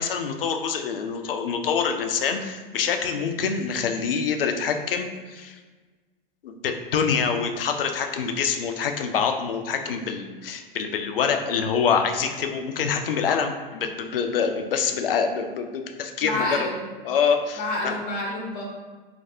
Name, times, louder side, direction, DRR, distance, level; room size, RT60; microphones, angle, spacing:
voice 1, 0.0-5.6 6.4-16.7 17.0-17.9, left 6 dB, 70° left, 5 dB, 0.4 m, -26 dB
voice 2, 16.2-16.8 17.6-18.6, left 1 dB, 30° left, -1 dB, 0.7 m, -28 dB
3.2 x 2.5 x 2.6 m, 1.3 s
figure-of-eight pair, 95°, 29 cm